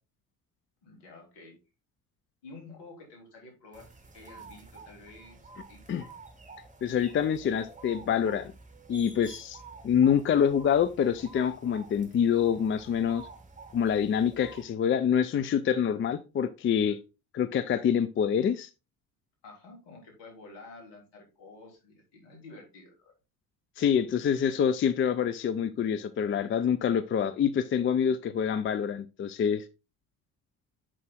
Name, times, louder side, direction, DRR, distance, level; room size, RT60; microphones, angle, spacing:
voice 1, 0.8-1.5 2.4-5.4 5.7-5.8 19.4-23.1, left 3 dB, 65° left, 3.3 m, -50 dB
sound 1, 3.7-14.6, right 3 dB, 15° right, 1.7 m, -50 dB
voice 2, 6.8-8.5 8.9-9.6 9.8-13.3 13.7-17.0 17.3-18.7 23.8-29.6, left 8 dB, 30° left, 0.5 m, -26 dB
6.4 x 5.5 x 3.7 m
hypercardioid pair, 50°, 45 cm